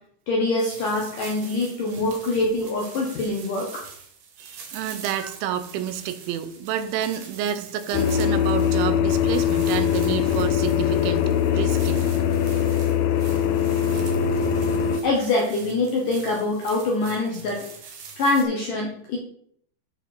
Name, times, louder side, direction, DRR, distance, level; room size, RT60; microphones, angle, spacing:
voice 1, 0.3-3.8 5.2-5.3 15.0-17.7 18.2-19.2, left 2 dB, 70° left, -1 dB, 2.0 m, -24 dB
sound 1, 0.6-18.4, right 6 dB, 65° right, 2.2 m, -44 dB
voice 2, 4.4-12.2, right 10 dB, 80° right, 10 dB, 3.0 m, -29 dB
sound 2, 7.9-15.0, left 8 dB, 90° left, 2.3 m, -22 dB
12.5 x 4.8 x 4.4 m, 0.65 s
omnidirectional pair, 5.5 m